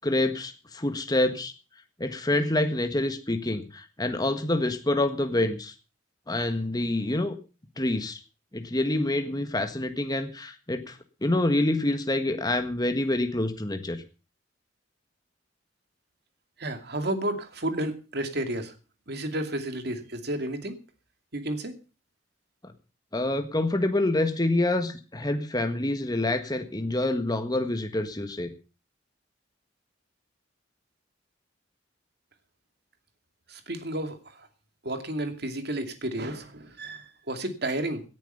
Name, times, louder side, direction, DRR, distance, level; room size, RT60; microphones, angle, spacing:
voice 1, 0.0-1.5 2.0-5.7 6.3-7.3 7.8-8.2 8.5-14.0 22.6-22.7 23.1-28.5, left 1 dB, 20° left, 7 dB, 1.6 m, -27 dB
voice 2, 16.6-18.7 19.1-20.8 21.3-21.7 33.5-34.5 34.8-38.0, right 1 dB, 60° right, 7 dB, 2.5 m, -32 dB
18.0 x 10.5 x 5.5 m, 0.34 s
head